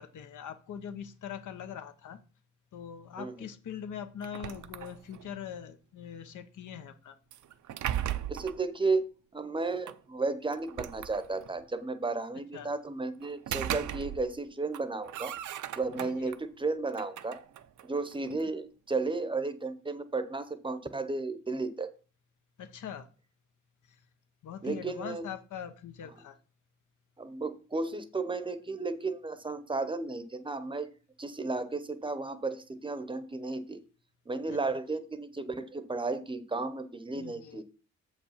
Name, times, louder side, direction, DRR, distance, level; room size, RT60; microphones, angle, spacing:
voice 1, 0.0-2.2 2.7-7.2 12.5-12.7 16.0-16.3 22.6-23.1 23.9-24.0 24.4-26.4 34.5-34.6 37.1-37.6, left 8 dB, 90° left, 1.0 m, -42 dB
sound 1, 4.2-5.3 7.3-8.6 9.9-10.0 10.5-11.6 13.2-14.4 14.7-16.4 16.9-18.5, right 11 dB, 80° right, 0.6 m, -37 dB
voice 2, 8.3-9.1 9.3-15.4 15.7-17.4 17.8-21.9 24.6-25.2 27.2-30.9 31.2-33.8 34.3-37.6, right 3 dB, 15° right, 0.7 m, -33 dB
7.4 x 5.1 x 5.7 m
wide cardioid pair, 155°, 30 cm